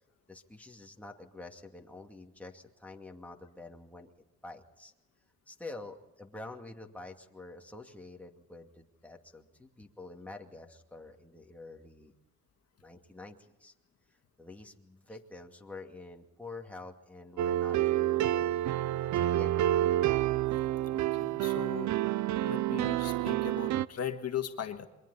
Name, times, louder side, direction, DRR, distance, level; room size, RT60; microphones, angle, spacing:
voice 1, 0.3-4.1 4.4-4.9 5.5-12.1 12.8-13.7 14.1-18.6 19.0-19.7, left 2 dB, 5° left, 1 dB, 2.4 m, -48 dB
sound 1, 17.4-23.9, right 13 dB, 70° right, 0.6 m, -28 dB
voice 2, 20.9-22.1 22.4-24.9, left 9 dB, 55° left, 5 dB, 1.7 m, -38 dB
28.0 x 23.5 x 4.2 m, 1.0 s
cardioid pair, 90°, 30 cm